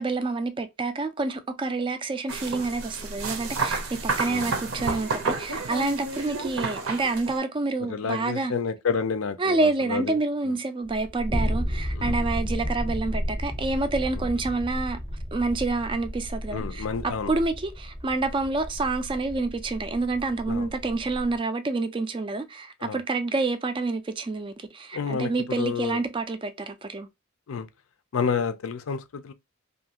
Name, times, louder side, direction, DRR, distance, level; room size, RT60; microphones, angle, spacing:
voice 1, 0.0-8.5 9.4-15.0 15.3-27.1, right 3 dB, 25° right, 0.3 m, -28 dB
sound 1, 2.3-7.4, right 3 dB, 70° right, 0.7 m, -30 dB
voice 2, 7.9-10.2 11.9-12.2 14.1-14.2 16.5-17.3 20.5-20.7 22.8-23.0 24.9-26.0 27.5-27.7 28.1-29.3, left 5 dB, 70° left, 0.4 m, -29 dB
sound 2, 10.8-21.3, equal, 15° left, 0.7 m, -32 dB
2.6 x 2.4 x 2.7 m
head